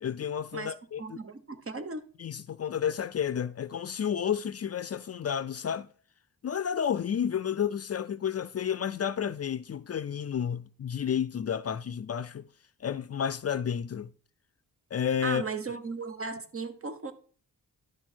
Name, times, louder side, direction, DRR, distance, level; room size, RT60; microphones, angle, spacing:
voice 1, 0.0-1.0 2.2-5.9 6.4-12.5 12.8-14.1 14.9-15.4, left 8 dB, 45° left, 0.4 m, -31 dB
voice 2, 0.5-2.0 15.2-17.1, right 4 dB, 40° right, 1.1 m, -36 dB
11.0 x 6.1 x 4.5 m
wide cardioid pair, 105°, 34 cm